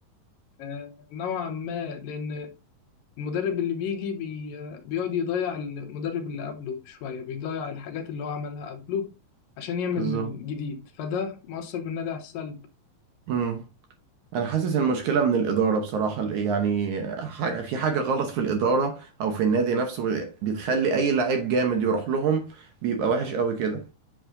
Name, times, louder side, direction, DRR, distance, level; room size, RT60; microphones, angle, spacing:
voice 1, 0.6-2.5 3.2-9.1 9.6-12.6, left 6 dB, 75° left, 2.6 m, -31 dB
voice 2, 10.0-10.3 13.3-13.6 14.3-23.8, right 5 dB, 65° right, 2.1 m, -25 dB
8.4 x 6.2 x 2.6 m
omnidirectional pair, 4.2 m